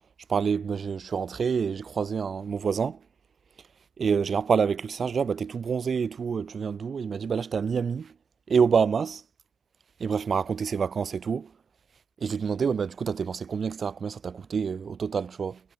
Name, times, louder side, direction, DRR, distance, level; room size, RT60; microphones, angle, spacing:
voice 1, 0.3-3.0 4.0-8.1 8.5-9.2 10.0-11.5 12.2-15.6, right 6 dB, 45° right, 7.9 m, -27 dB
cardioid pair, 90°, 0 cm